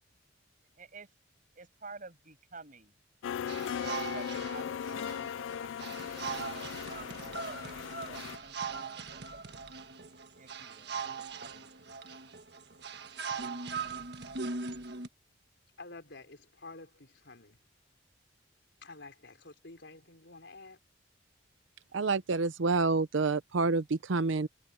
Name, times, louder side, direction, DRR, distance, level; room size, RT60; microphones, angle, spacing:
voice 1, 0.8-1.1 1.5-2.9 3.6-9.5 10.4-11.1 11.3-11.9, right 3 dB, 45° right, 6.6 m, -51 dB
sound 1, 3.2-8.4, left 8 dB, 80° left, 0.3 m, -38 dB
sound 2, 3.5-15.1, right 5 dB, 60° right, 1.5 m, -40 dB
voice 2, 15.8-17.6 18.8-20.8, left 3 dB, 65° left, 4.7 m, -50 dB
voice 3, 21.9-24.5, right 3 dB, 80° right, 0.6 m, -28 dB
head